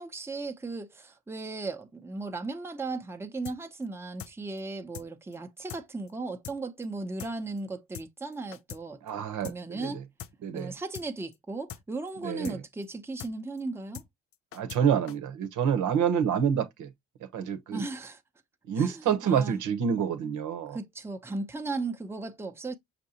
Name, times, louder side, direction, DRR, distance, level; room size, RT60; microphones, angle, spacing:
voice 1, 0.0-9.0 9.4-10.0 10.5-14.0 17.7-18.2 18.7-19.6 20.7-22.7, right 3 dB, 10° right, 0.6 m, -36 dB
sound 1, 3.5-3.6 3.8-3.9 4.2-4.3 4.6-4.7 4.9-5.1 5.3-5.4 5.7-5.8 6.1-6.2 6.4-6.6 6.8-6.9 7.2-7.3 7.6-7.7 7.9-8.1 8.3-8.8 9.1-9.2 9.4-9.6 9.8-9.9 10.2-10.3 10.6-10.7 10.9-11.1 11.3-11.4 11.7-11.8 12.1-12.2 12.4-12.6 12.8-12.9 13.2-13.3 13.6-13.7 13.9-14.1 14.3-14.8 15.1-15.2, left 10 dB, 50° left, 0.4 m, -42 dB
voice 2, 9.0-9.9 10.4-10.7 12.2-12.6 14.5-16.9 17.3-17.8 18.7-20.8, right 8 dB, 80° right, 0.9 m, -27 dB
5.9 x 2.6 x 2.8 m
cardioid pair, 90°, 30 cm